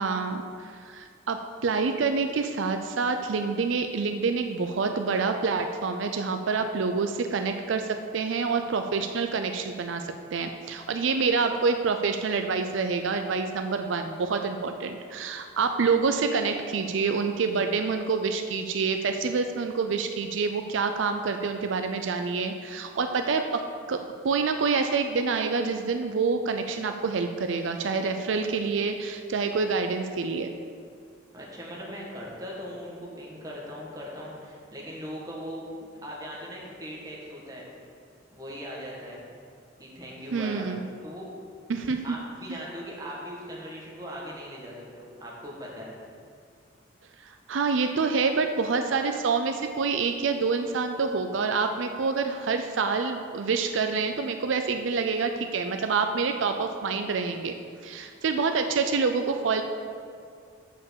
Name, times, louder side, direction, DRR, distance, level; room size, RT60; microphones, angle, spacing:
voice 1, 0.0-30.5 40.3-40.8 41.7-42.2 47.2-59.6, right 4 dB, 80° right, 6 dB, 0.5 m, -27 dB
voice 2, 31.3-37.7 38.3-39.2 39.8-40.7 41.0-41.3 42.0-45.9, equal, 20° right, -4 dB, 1.6 m, -39 dB
6.9 x 5.4 x 6.9 m, 2.2 s
head